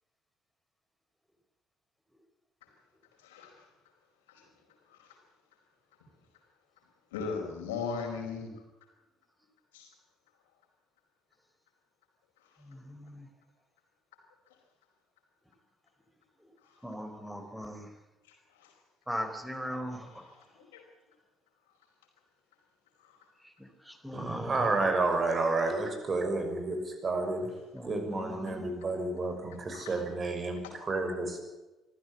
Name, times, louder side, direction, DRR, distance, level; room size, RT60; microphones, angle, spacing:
voice 1, 3.2-3.7 4.3-4.5 4.9-5.2 7.1-8.5 9.7-9.9 16.6-16.8 18.3-18.7 20.1-20.8 23.0-23.2 29.7-30.0, left 5 dB, 75° left, 3 dB, 4.8 m, -39 dB
voice 2, 12.9-13.2 16.8-17.8 19.1-20.1 24.0-24.7 27.7-28.6, equal, 5° right, 6 dB, 4.5 m, -38 dB
voice 3, 24.1-27.5 27.8-31.4, right 3 dB, 35° right, 5 dB, 6.2 m, -31 dB
25.0 x 14.5 x 8.2 m, 1.0 s
figure-of-eight pair, 50°, 0 cm